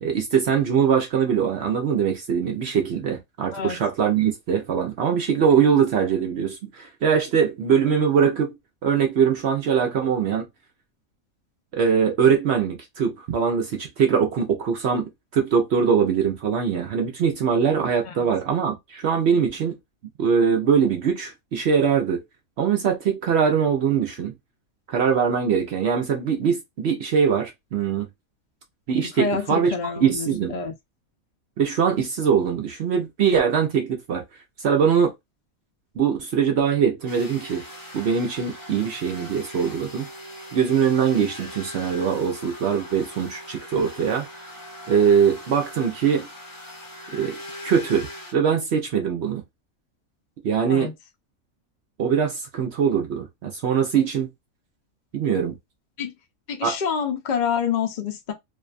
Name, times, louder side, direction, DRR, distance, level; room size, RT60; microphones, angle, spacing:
voice 1, 0.0-8.6 8.8-10.5 11.7-15.1 15.3-19.7 20.2-22.2 22.6-24.3 24.9-28.1 28.9-29.7 30.0-30.5 31.6-34.2 34.6-35.1 36.0-37.6 37.9-40.1 40.5-44.3 44.9-46.3 47.1-49.4 50.4-50.9 52.0-54.3 55.1-55.6 56.6-56.8, right 7 dB, 60° right, 0.7 m, -22 dB
voice 2, 29.0-30.7 50.7-50.9 56.0-56.1 56.5-58.3, left 6 dB, 90° left, 0.4 m, -27 dB
sound 1, 37.1-48.3, left 1 dB, 20° left, 0.7 m, -40 dB
2.6 x 2.2 x 2.4 m
omnidirectional pair, 1.5 m